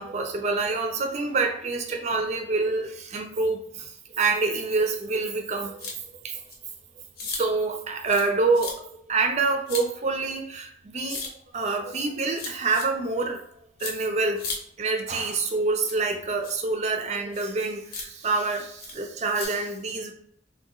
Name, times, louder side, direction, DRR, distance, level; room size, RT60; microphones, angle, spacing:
voice 1, 0.0-5.9 6.2-6.4 7.4-11.2 11.5-13.4 13.8-14.4 14.8-20.1, right 3 dB, 35° right, 5 dB, 0.4 m, -27 dB
sound 1, 5.8-6.0 6.5-6.6 7.2-7.4 8.1-8.3 8.5-8.7 9.7-9.8 11.1-11.3 12.3-12.8 13.8-13.9 14.4-14.6 15.8-16.0 16.4-16.5 17.3-17.5 17.9-18.0 18.8-18.9 19.4-19.5, left 4 dB, 50° left, 0.8 m, -34 dB
2.8 x 2.2 x 3.7 m, 0.67 s
head